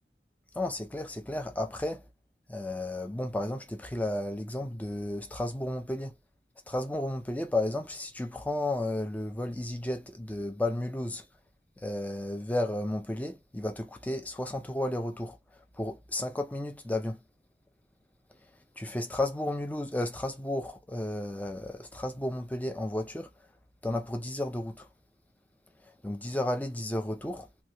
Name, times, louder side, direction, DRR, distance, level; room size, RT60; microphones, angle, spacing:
voice 1, 0.5-2.0 2.5-6.2 6.7-11.2 11.8-15.4 15.8-17.2 18.8-23.3 23.8-24.9 26.0-27.5, left 1 dB, 10° left, 0.5 m, -33 dB
3.1 x 2.2 x 2.7 m
head